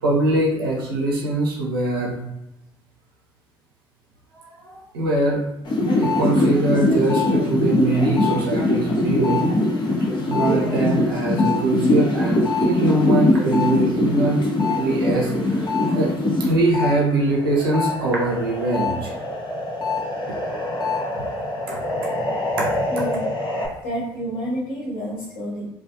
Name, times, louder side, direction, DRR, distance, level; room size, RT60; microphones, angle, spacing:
voice 1, 0.0-2.2 4.4-5.4 6.0-9.6 10.3-14.4 14.8-16.1 16.4-19.1 20.3-20.4 21.7-21.8 22.6-22.7, right 2 dB, 90° right, -3 dB, 0.6 m, -22 dB
sound 1, 5.6-16.9 17.3-23.7, left 2 dB, 40° left, 0.7 m, -22 dB
voice 2, 22.9-23.3 23.8-25.7, equal, 85° left, -7 dB, 1.2 m, -29 dB
2.4 x 2.2 x 2.6 m, 0.90 s
hypercardioid pair, 55°, 12 cm